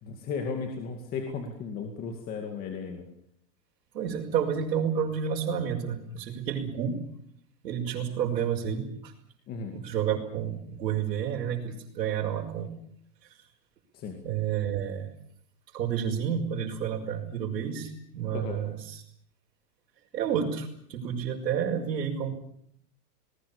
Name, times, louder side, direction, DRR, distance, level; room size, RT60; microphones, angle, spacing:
voice 1, 0.0-3.0 9.5-9.7 13.9-14.2 18.3-18.6, left 5 dB, 20° left, 3 dB, 2.3 m, -35 dB
voice 2, 3.9-7.0 7.6-9.1 9.7-12.7 14.2-15.1 15.7-19.0 20.1-22.3, right 8 dB, 85° right, 1 dB, 5.7 m, -30 dB
28.5 x 20.5 x 7.1 m, 0.68 s
supercardioid pair, 180°, 49 cm